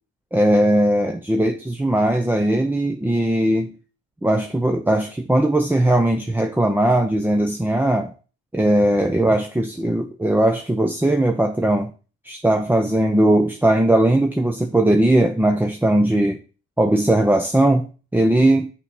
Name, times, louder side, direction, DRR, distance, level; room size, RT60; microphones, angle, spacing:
voice 1, 0.3-3.7 4.2-8.1 8.5-11.9 12.2-16.4 16.8-18.7, right 1 dB, 5° right, 0.7 m, -19 dB
6.8 x 4.7 x 5.3 m
cardioid pair, 90°, 30 cm